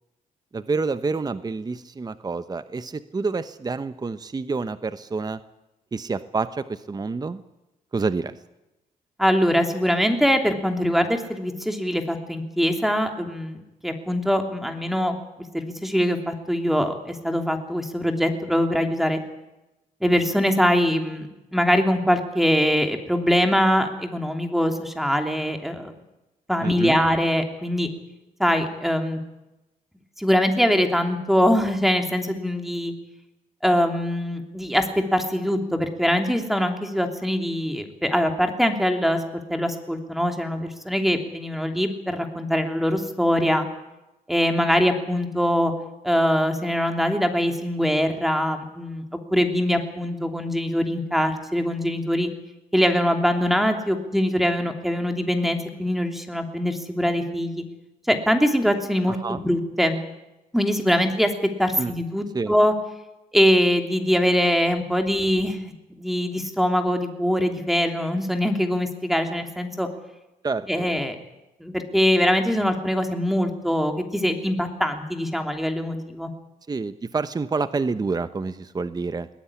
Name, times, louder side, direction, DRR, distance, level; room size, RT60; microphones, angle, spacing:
voice 1, 0.5-5.4 5.9-7.4 7.9-8.3 26.6-27.0 59.1-59.4 61.8-61.9 62.3-62.5 70.4-70.9 76.7-79.3, right 4 dB, 25° right, 12 dB, 0.9 m, -28 dB
voice 2, 9.2-15.2 15.5-19.2 20.0-25.9 26.5-27.9 28.4-29.2 30.2-32.9 33.6-39.2 39.5-43.7 44.3-45.7 46.0-49.0 49.3-52.3 52.7-57.6 58.1-60.0 60.5-61.3 61.6-62.7 63.3-65.7 66.0-69.9 70.7-71.2 71.6-76.3, equal, ahead, 5 dB, 3.0 m, -23 dB
21.0 x 16.5 x 9.9 m, 0.97 s
cardioid pair, 90°, 15 cm